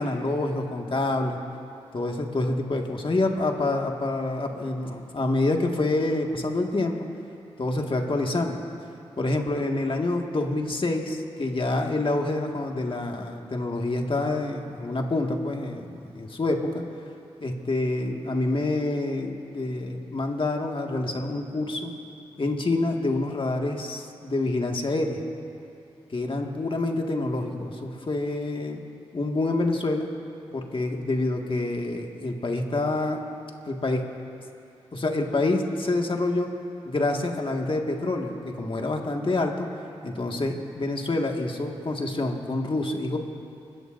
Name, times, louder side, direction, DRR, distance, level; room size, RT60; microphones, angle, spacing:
voice 1, 0.0-1.4 1.9-7.1 7.6-8.6 9.2-16.8 17.4-21.9 22.4-25.2 26.1-28.8 29.1-30.1 30.5-33.2 33.7-34.0 34.9-36.5 36.9-39.7 40.0-43.2, left 2 dB, 45° left, 2 dB, 1.9 m, -27 dB
25.5 x 13.5 x 2.6 m, 2.6 s
supercardioid pair, 40°, 12 cm